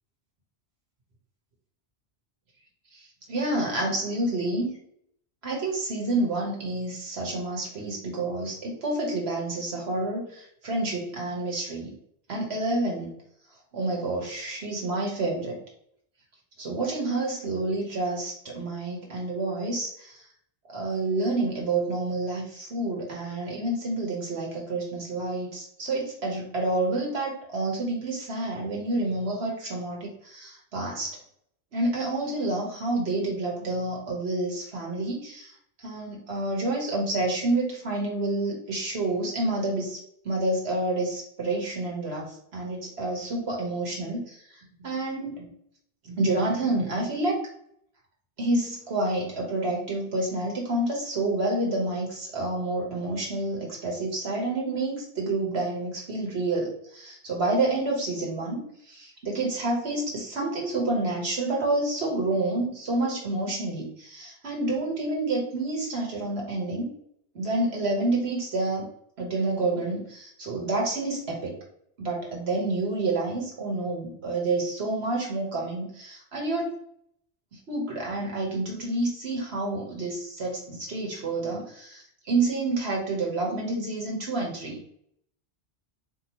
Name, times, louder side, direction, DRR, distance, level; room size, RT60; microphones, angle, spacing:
voice 1, 3.3-4.7 5.4-11.9 12.3-13.1 13.7-15.6 16.6-20.2 20.7-31.2 31.7-35.5 35.8-40.0 40.2-44.4 44.8-45.5 46.0-47.3 48.4-66.9 67.3-68.9 69.2-71.6 72.0-76.8 77.7-84.8, right 2 dB, 70° right, -1 dB, 1.5 m, -29 dB
4.3 x 2.9 x 3.0 m, 0.69 s
omnidirectional pair, 1.1 m